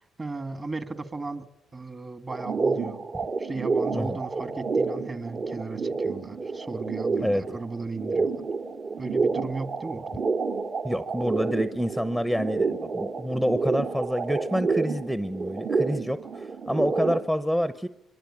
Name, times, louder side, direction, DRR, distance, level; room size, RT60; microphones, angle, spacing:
voice 1, 0.2-1.5 1.7-3.0 3.4-8.3 9.0-10.1, right 3 dB, 30° right, 10 dB, 2.0 m, -35 dB
sound 1, 2.3-17.2, right 4 dB, 55° right, 2.5 m, -29 dB
voice 2, 10.8-17.9, equal, 5° right, 12 dB, 0.9 m, -27 dB
24.0 x 22.5 x 8.7 m, 0.85 s
cardioid pair, 95°, 0 cm